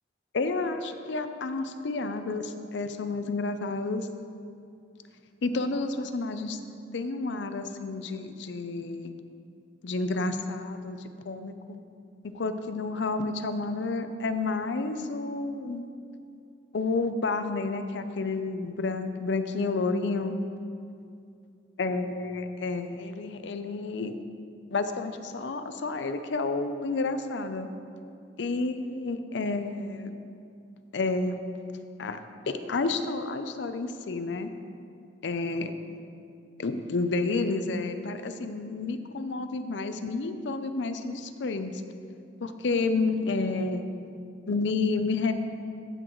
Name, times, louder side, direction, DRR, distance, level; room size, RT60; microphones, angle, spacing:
voice 1, 0.3-4.1 5.4-6.6 6.9-9.1 9.8-11.8 12.2-15.9 16.7-20.4 21.8-24.2 24.7-27.7 28.4-30.1 30.9-31.4 32.0-32.2 32.5-34.5 35.2-35.7 36.6-41.8 42.4-43.9 44.5-45.3, left 3 dB, 75° left, 9 dB, 0.5 m, -30 dB
14.5 x 6.3 x 3.1 m, 2.5 s
head